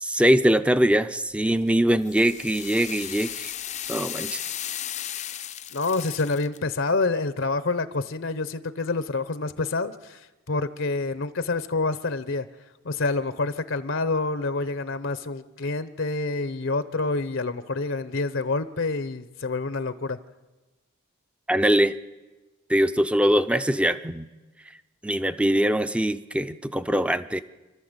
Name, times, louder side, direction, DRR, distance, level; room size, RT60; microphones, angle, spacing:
voice 1, 0.0-3.5 3.9-4.4 21.5-22.0 22.7-24.3 25.0-27.4, equal, 5° right, 12 dB, 0.6 m, -22 dB
sound 1, 1.4-6.6, left 10 dB, 35° left, 0.6 m, -35 dB
voice 2, 5.7-12.5 12.8-20.2, left 3 dB, 65° left, 12 dB, 0.8 m, -27 dB
29.0 x 12.5 x 8.1 m, 1.2 s
head